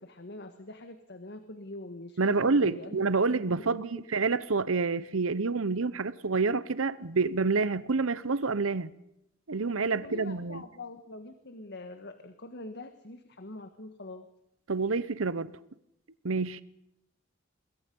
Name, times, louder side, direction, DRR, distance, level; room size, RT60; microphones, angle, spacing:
voice 1, 0.0-3.0 3.3-4.0 9.9-14.3, left 2 dB, 55° left, 1.6 m, -44 dB
voice 2, 2.2-8.9 9.5-10.6 14.7-15.5 16.2-16.6, right 4 dB, 85° right, 0.9 m, -28 dB
26.5 x 22.0 x 5.5 m
head